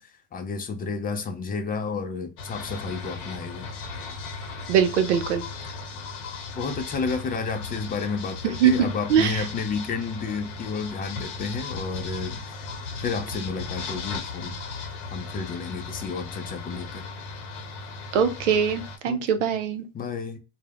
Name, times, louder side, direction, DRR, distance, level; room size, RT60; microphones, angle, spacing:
voice 1, 0.0-3.7 6.6-12.6 13.0-14.5 15.1-17.0 19.1-19.6 19.9-20.4, left 4 dB, 25° left, 0.5 m, -31 dB
sound 1, 2.4-19.0, left 4 dB, 70° left, 0.8 m, -36 dB
voice 2, 4.7-5.4 8.6-9.4 18.1-19.8, right 7 dB, 80° right, 0.6 m, -22 dB
2.2 x 2.1 x 3.3 m
hypercardioid pair, 90°, 36 cm